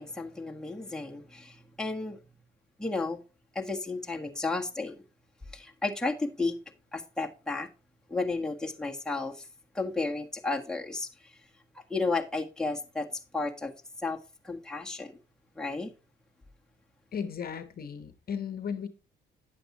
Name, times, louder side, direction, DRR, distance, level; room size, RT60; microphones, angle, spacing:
voice 1, 0.0-2.2 2.8-3.2 3.5-5.0 5.5-6.6 6.9-7.7 8.1-9.5 9.7-11.1 11.9-13.1 13.3-13.7 14.0-14.2 14.4-15.1 15.5-15.9, left 3 dB, 5° left, 1.6 m, -32 dB
voice 2, 17.1-18.9, left 7 dB, 50° left, 1.1 m, -35 dB
9.6 x 7.7 x 3.0 m
cardioid pair, 90°, 20 cm